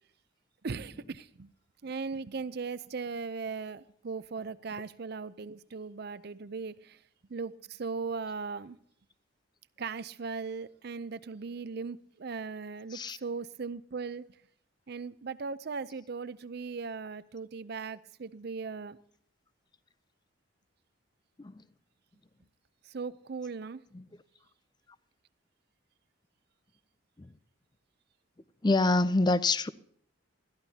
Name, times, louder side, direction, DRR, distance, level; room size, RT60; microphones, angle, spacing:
voice 1, 0.6-1.5 1.8-7.0 7.3-8.8 9.8-14.2 14.9-19.0 22.8-23.8, right 4 dB, 50° right, 0.5 m, -38 dB
voice 2, 28.6-29.7, left 2 dB, 20° left, 0.4 m, -26 dB
20.5 x 13.0 x 2.8 m
head